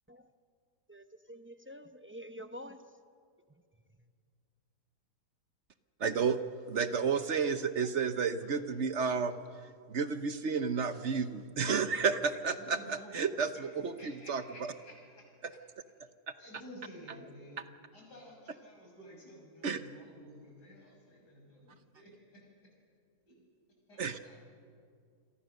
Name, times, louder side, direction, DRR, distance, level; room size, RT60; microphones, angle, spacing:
voice 1, 0.9-2.8, equal, 20° right, 7 dB, 0.3 m, -47 dB
voice 2, 6.0-6.4 6.7-9.4 9.9-14.7 15.4-15.5 19.6-19.8 24.0-24.2, right 5 dB, 50° right, 11 dB, 1.0 m, -31 dB
voice 3, 12.6-13.6 14.0-15.3 16.4-17.6 17.9-22.4 23.3-23.4 23.9-24.4, equal, 75° left, -1 dB, 7.1 m, -53 dB
28.0 x 23.0 x 6.5 m, 2.2 s
omnidirectional pair, 1.8 m